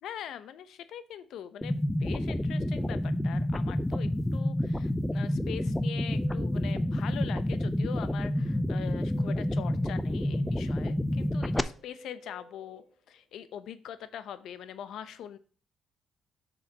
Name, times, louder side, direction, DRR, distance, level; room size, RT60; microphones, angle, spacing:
voice 1, 0.0-15.4, left 9 dB, 80° left, 13 dB, 0.7 m, -43 dB
sound 1, 1.6-11.6, left 1 dB, 10° left, 0.5 m, -29 dB
Guitar, 4.9-7.4 8.1-13.6, equal, 60° right, 3.4 m, -56 dB
8.0 x 6.2 x 2.9 m, 0.40 s
cardioid pair, 90°, 0 cm